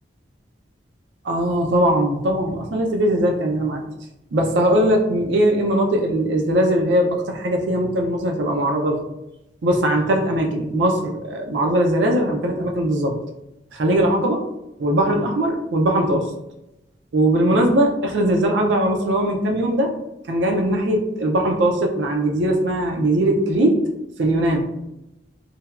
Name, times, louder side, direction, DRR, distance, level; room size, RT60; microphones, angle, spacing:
voice 1, 1.2-3.8 4.3-9.0 9.6-13.2 13.7-14.4 14.8-16.3 17.1-19.9 20.3-23.8 24.2-24.7, right 1 dB, 90° right, 2 dB, 0.4 m, -20 dB
3.2 x 2.2 x 2.3 m, 0.91 s
head